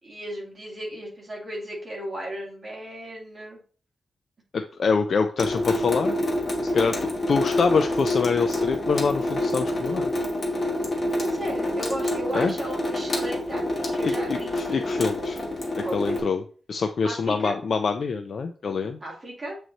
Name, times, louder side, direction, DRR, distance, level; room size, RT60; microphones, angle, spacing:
voice 1, 0.0-3.6 11.2-14.8 15.8-16.2 17.0-17.6 19.0-19.6, right 1 dB, 25° right, -3 dB, 2.1 m, -35 dB
voice 2, 4.5-6.2 6.6-10.1 12.3-12.5 14.0-15.4 15.8-16.4 16.7-19.0, left 5 dB, 55° left, 6 dB, 0.4 m, -25 dB
Water tap faucet / Sink (filling or washing) / Drip, 5.4-16.2, left 1 dB, 30° left, 1.4 m, -27 dB
7.6 x 3.1 x 3.9 m, 0.41 s
wide cardioid pair, 170°, 0 cm